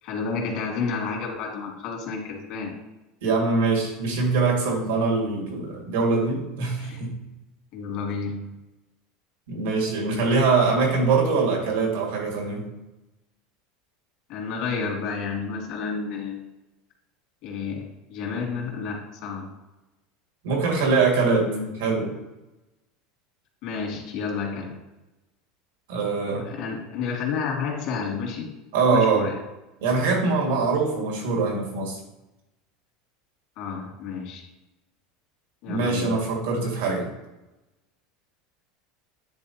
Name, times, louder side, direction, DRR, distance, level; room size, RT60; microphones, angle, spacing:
voice 1, 0.0-2.8 6.8-7.0 7.7-8.5 14.3-16.4 17.4-19.5 21.2-21.7 23.6-24.8 26.3-28.5 28.9-29.4 33.6-34.4 35.6-36.1, left 5 dB, 65° left, -1 dB, 2.3 m, -31 dB
voice 2, 3.2-7.1 9.5-12.6 20.4-21.5 21.8-22.1 25.9-26.5 28.7-29.3 29.8-32.0 35.7-37.1, right 4 dB, 85° right, -1 dB, 2.0 m, -23 dB
10.5 x 3.7 x 2.9 m, 0.99 s
supercardioid pair, 125°, 0 cm